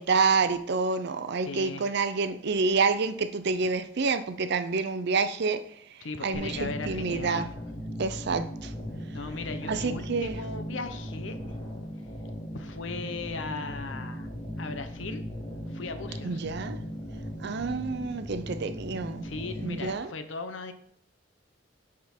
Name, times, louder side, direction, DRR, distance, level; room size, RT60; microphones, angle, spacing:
voice 1, 0.0-5.6 6.2-7.5 8.0-8.7 9.7-10.4 16.2-16.8 17.4-19.2 19.6-20.1, right 4 dB, 60° right, 0.6 m, -28 dB
voice 2, 1.4-1.9 6.0-7.6 9.1-11.4 12.5-14.3 14.6-15.2 15.7-16.4 19.2-20.7, left 3 dB, 70° left, 0.8 m, -37 dB
sound 1, 6.3-19.9, equal, 25° left, 1.1 m, -38 dB
10.5 x 3.7 x 4.4 m
head